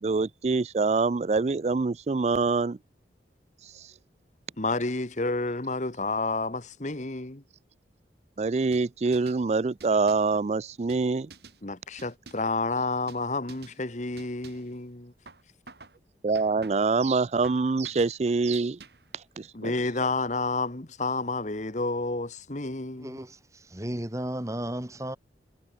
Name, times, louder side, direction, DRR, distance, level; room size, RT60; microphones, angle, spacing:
voice 1, 0.0-2.8 3.6-3.9 8.4-11.3 16.2-18.8 19.1-19.7, right 4 dB, 40° right, 0.4 m, -25 dB
voice 2, 4.6-7.4 11.6-15.1 19.5-23.2, left 3 dB, 40° left, 1.5 m, -30 dB
sound 1, 8.7-9.4 9.8-10.4 10.9-11.6 12.0-12.6 13.1-13.2 13.5-13.8 14.2-14.7 15.3-16.0 16.3-17.0 17.4-18.1 18.5-19.1, right 4 dB, 70° right, 7.2 m, -50 dB
voice 3, 23.0-25.2, right 1 dB, 20° right, 1.7 m, -34 dB
head